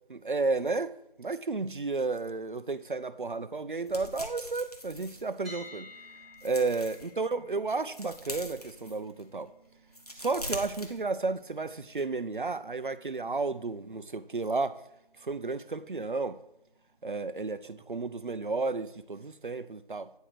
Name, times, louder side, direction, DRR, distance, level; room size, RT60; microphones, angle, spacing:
voice 1, 0.1-5.9 6.4-9.5 10.2-14.8 15.2-16.4 17.0-20.1, right 3 dB, 60° right, 0.4 m, -32 dB
sound 1, 3.9-5.8 6.2-7.1 7.6-9.3 9.8-11.5 11.8-12.0, equal, 40° left, 0.9 m, -43 dB
sound 2, 5.4-17.4, left 2 dB, ahead, 0.9 m, -56 dB
8.9 x 4.5 x 4.8 m
figure-of-eight pair, 180°, 29 cm